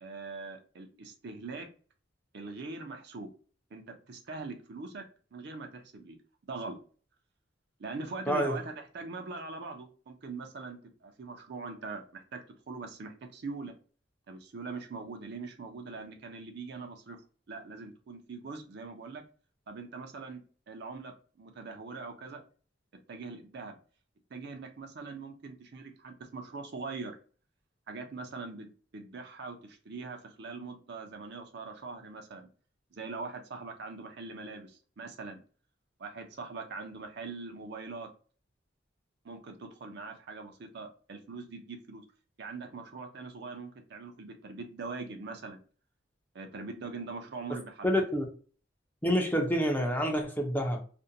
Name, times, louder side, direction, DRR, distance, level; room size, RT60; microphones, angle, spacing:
voice 1, 0.0-1.7 2.3-3.3 3.7-5.0 5.3-6.2 6.5-6.8 7.8-12.4 12.7-13.7 14.3-17.2 17.5-19.2 19.7-20.4 20.7-22.4 23.1-23.8 24.3-27.2 27.9-32.5 32.9-35.4 36.0-38.1 39.2-42.0 42.4-45.6 46.3-47.9, right 3 dB, 60° right, 5 dB, 0.5 m, -42 dB
voice 2, 8.3-8.6 47.8-48.2 49.0-50.9, equal, 10° left, 2 dB, 0.5 m, -28 dB
2.5 x 2.1 x 2.6 m, 0.40 s
head